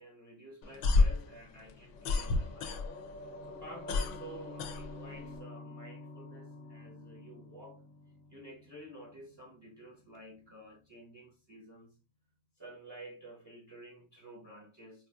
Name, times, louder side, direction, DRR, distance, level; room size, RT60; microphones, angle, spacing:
voice 1, 0.0-2.8 3.5-7.8 8.3-11.9 12.6-15.1, right 1 dB, 25° right, 0.7 m, -51 dB
sound 1, 0.6-3.2 3.5-5.4, left 3 dB, 85° left, 0.9 m, -29 dB
sound 2, 1.9-10.6 10.8-11.0, left 2 dB, 60° left, 0.5 m, -49 dB
4.5 x 2.4 x 2.3 m
omnidirectional pair, 1.2 m